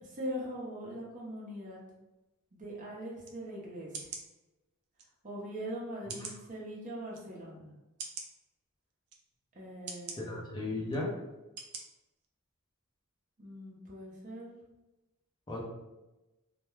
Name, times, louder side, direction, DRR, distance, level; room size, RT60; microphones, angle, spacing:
voice 1, 0.0-1.8 2.5-4.1 5.2-7.7 9.5-10.5 13.4-14.5, equal, 35° right, -4 dB, 0.6 m, -41 dB
sound 1, 3.2-3.4 3.9-4.3 5.0-5.1 6.1-6.4 7.1-7.2 8.0-8.3 9.1-9.2 9.9-10.2 10.9-11.0 11.6-11.8 12.2-12.3, right 5 dB, 75° right, 0.4 m, -42 dB
voice 2, 10.2-11.1 15.5-15.6, left 2 dB, 20° left, -3 dB, 0.6 m, -35 dB
2.3 x 2.1 x 3.0 m, 1.0 s
head